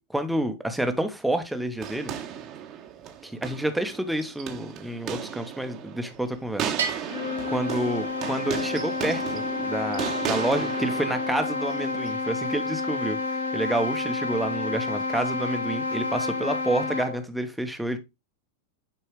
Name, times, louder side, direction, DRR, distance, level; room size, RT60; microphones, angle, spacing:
voice 1, 0.1-2.1 3.2-7.0 7.5-13.2 13.5-18.0, right 1 dB, 5° right, 1.3 m, -29 dB
sound 1, 1.8-12.1, right 9 dB, 35° right, 1.3 m, -35 dB
Bell, 6.8-8.5, right 6 dB, 65° right, 1.6 m, -34 dB
sound 2, 7.0-17.3, left 3 dB, 70° left, 1.5 m, -30 dB
9.9 x 4.5 x 3.3 m
figure-of-eight pair, 90°, 0 cm